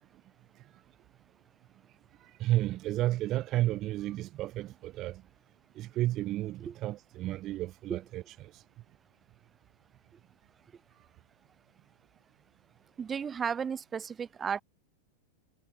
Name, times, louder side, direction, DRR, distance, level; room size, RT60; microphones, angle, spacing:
voice 1, 2.2-5.2 5.8-8.6, right 15 dB, 35° right, 0.6 m, -32 dB
voice 2, 13.0-14.6, right 7 dB, 20° right, 1.3 m, -34 dB
figure-of-eight pair, 90°, 0 cm